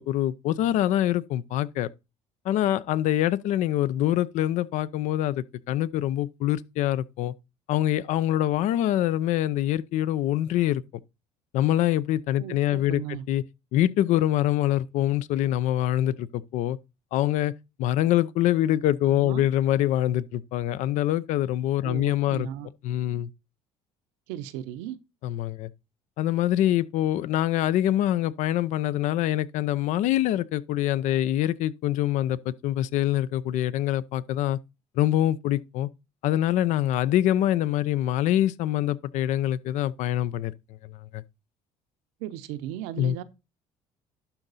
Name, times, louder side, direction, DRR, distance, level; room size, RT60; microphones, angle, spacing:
voice 1, 0.0-1.9 2.4-7.3 7.7-10.8 11.5-13.0 13.3-13.4 13.7-16.8 17.1-17.5 17.8-22.5 22.8-23.3 25.2-25.7 26.2-34.6 35.0-35.9 36.2-40.5 40.8-41.2 43.0-43.2, left 13 dB, 70° left, 0.6 m, -25 dB
voice 2, 12.4-13.3 19.1-19.4 21.8-22.7 24.3-25.0 42.2-43.2, right 12 dB, 90° right, 0.8 m, -36 dB
11.5 x 3.9 x 4.1 m
supercardioid pair, 95°, 13 cm